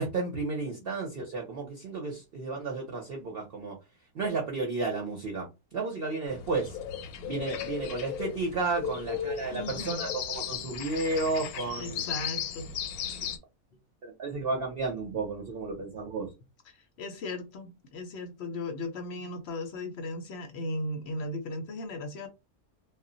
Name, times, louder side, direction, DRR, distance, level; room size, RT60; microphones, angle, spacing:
voice 1, 0.0-3.8 4.1-5.5 5.7-6.8 7.2-12.0 14.0-16.3, right 3 dB, 50° right, 0.7 m, -32 dB
sound 1, 6.3-13.4, left 8 dB, 85° left, 1.1 m, -36 dB
voice 2, 9.5-10.2 11.6-12.7 13.0-13.1 16.7-22.3, left 2 dB, 60° left, 0.7 m, -37 dB
2.4 x 2.0 x 3.7 m
omnidirectional pair, 1.5 m